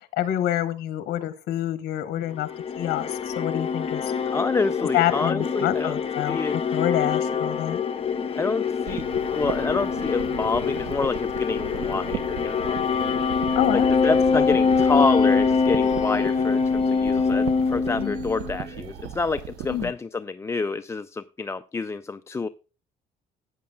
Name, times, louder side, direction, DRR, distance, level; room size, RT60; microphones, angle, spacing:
voice 1, 0.1-2.5 2.8-4.1 4.9-7.8 13.5-13.9 14.3-14.4 18.0-18.2 19.7-19.9, left 13 dB, 70° left, 0.9 m, -27 dB
sound 1, 2.4-18.7, left 5 dB, 35° left, 1.1 m, -24 dB
voice 2, 4.3-6.6 8.4-9.1 9.3-12.8 13.7-22.5, left 4 dB, 15° left, 0.3 m, -28 dB
sound 2, 8.9-19.9, right 10 dB, 85° right, 0.7 m, -37 dB
sound 3, 14.4-19.4, right 7 dB, 65° right, 1.5 m, -45 dB
14.0 x 8.7 x 2.2 m
cardioid pair, 110°, 17 cm